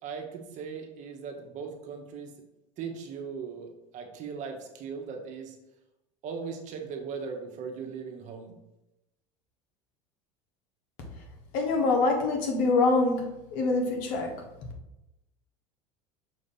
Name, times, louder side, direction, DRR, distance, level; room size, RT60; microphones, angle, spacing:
voice 1, 0.0-2.3 2.8-5.6 6.2-8.6, right 5 dB, 50° right, 3 dB, 1.2 m, -38 dB
voice 2, 11.5-13.2 13.5-14.3, left 3 dB, 65° left, 2 dB, 1.4 m, -24 dB
6.4 x 2.7 x 5.5 m, 0.91 s
supercardioid pair, 105°, 16 cm